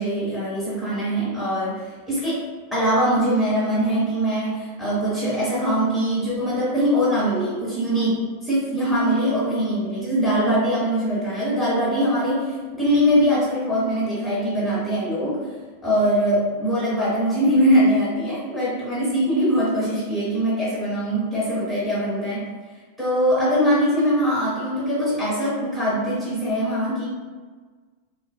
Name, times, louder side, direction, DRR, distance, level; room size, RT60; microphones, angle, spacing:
voice 1, 0.0-15.5 15.8-22.5 23.0-27.0, equal, ahead, -10 dB, 1.0 m, -22 dB
3.2 x 2.1 x 2.2 m, 1.5 s
figure-of-eight pair, 90°, 0 cm